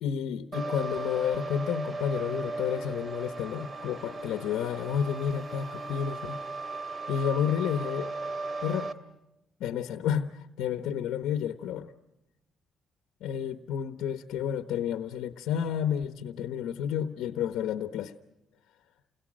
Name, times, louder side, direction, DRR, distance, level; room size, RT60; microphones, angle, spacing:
voice 1, 0.0-6.4 7.1-8.1 8.6-8.9 9.6-11.9 13.2-18.1, left 8 dB, 90° left, 8 dB, 1.1 m, -31 dB
sound 1, 0.5-8.9, right 3 dB, 30° right, 2.5 m, -37 dB
29.5 x 21.5 x 6.4 m, 0.97 s
cardioid pair, 90°, 0 cm